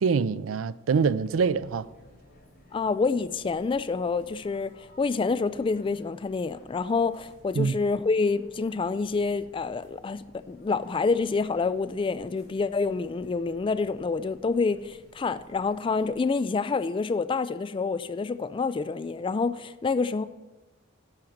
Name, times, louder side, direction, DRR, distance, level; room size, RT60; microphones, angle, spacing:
voice 1, 0.0-1.9 7.6-7.8, right 5 dB, 85° right, 0.4 m, -25 dB
sound 1, 0.9-16.1, left 1 dB, 55° left, 3.1 m, -56 dB
voice 2, 2.7-20.2, left 4 dB, 25° left, 0.3 m, -27 dB
11.5 x 5.2 x 7.2 m
head